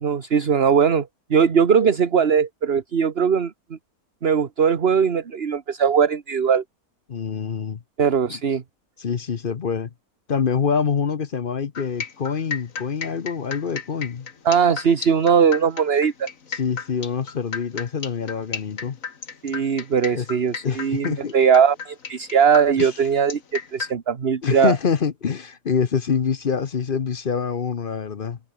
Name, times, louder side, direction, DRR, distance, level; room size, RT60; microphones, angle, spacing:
voice 1, 0.0-3.8 4.2-6.6 8.0-8.6 14.4-16.3 19.4-24.7, right 6 dB, 45° right, 1.4 m, -20 dB
voice 2, 7.1-7.8 8.3-8.4 9.0-9.9 10.3-14.3 16.5-19.0 20.1-20.3 20.6-21.3 22.8-22.9 24.4-28.4, left 6 dB, 40° left, 0.9 m, -25 dB
sound 1, 11.7-23.9, left 6 dB, 60° left, 2.0 m, -34 dB
omnidirectional pair, 1.6 m